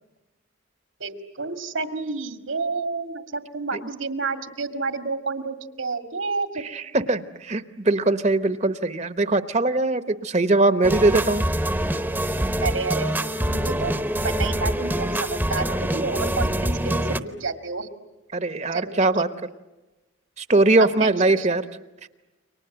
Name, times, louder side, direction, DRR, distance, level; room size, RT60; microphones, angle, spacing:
voice 1, 1.0-6.6 12.6-13.9 14.2-17.9 18.7-19.3 20.8-21.6, right 4 dB, 85° right, 7 dB, 2.1 m, -30 dB
voice 2, 6.7-11.4 18.3-19.3 20.4-21.6, right 2 dB, 35° right, 11 dB, 0.9 m, -21 dB
sound 1, 10.8-17.2, right 1 dB, 10° right, 0.9 m, -25 dB
29.5 x 24.0 x 7.8 m, 1.1 s
head